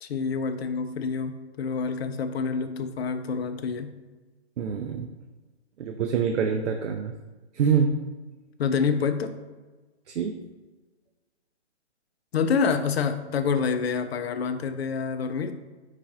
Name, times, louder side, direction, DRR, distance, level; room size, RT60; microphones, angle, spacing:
voice 1, 0.0-3.9 8.6-9.4 12.3-15.5, left 5 dB, 60° left, 8 dB, 0.5 m, -27 dB
voice 2, 4.6-5.1 5.8-7.1 7.5-7.9 10.1-10.4, right 6 dB, 80° right, 5 dB, 0.5 m, -25 dB
4.7 x 2.5 x 4.1 m, 1.3 s
hypercardioid pair, 150°, 35 cm